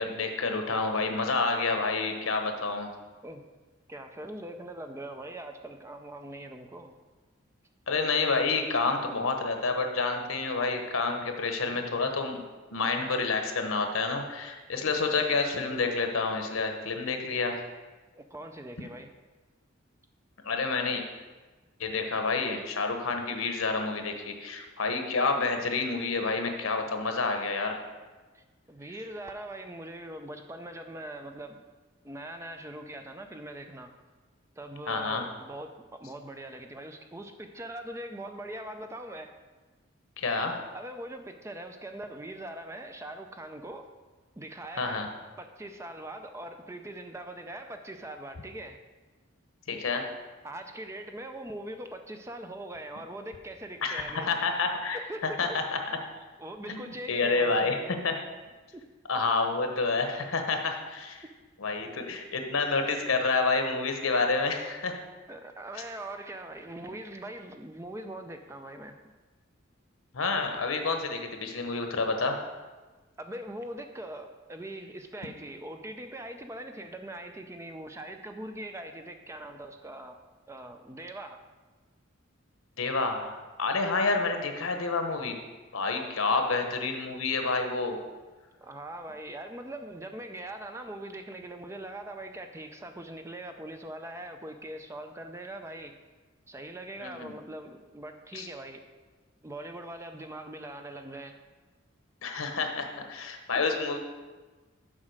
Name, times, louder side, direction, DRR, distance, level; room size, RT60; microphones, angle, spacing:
voice 1, 0.0-2.9 7.9-12.4 12.7-17.6 20.4-21.0 21.8-27.8 34.9-35.2 40.2-40.6 44.7-45.1 49.7-50.1 53.8-55.8 56.7-57.8 58.0-58.1 59.1-61.2 61.6-65.0 65.7-65.8 70.1-72.4 82.8-85.3 85.7-88.0 97.0-97.3 98.3-98.5 102.2-104.0, left 4 dB, 85° left, 5 dB, 1.0 m, -29 dB
voice 2, 3.9-7.0 11.7-11.8 18.2-19.1 28.3-31.7 32.0-33.9 34.6-39.3 40.7-43.9 44.4-45.1 45.4-48.8 50.4-54.3 54.9-55.6 56.4-57.9 58.7-58.8 65.3-69.0 73.2-80.2 80.5-81.4 86.0-86.4 88.6-95.9 96.5-98.8 99.4-101.4, right 1 dB, 15° right, 6 dB, 0.4 m, -41 dB
7.4 x 4.9 x 6.4 m, 1.3 s
head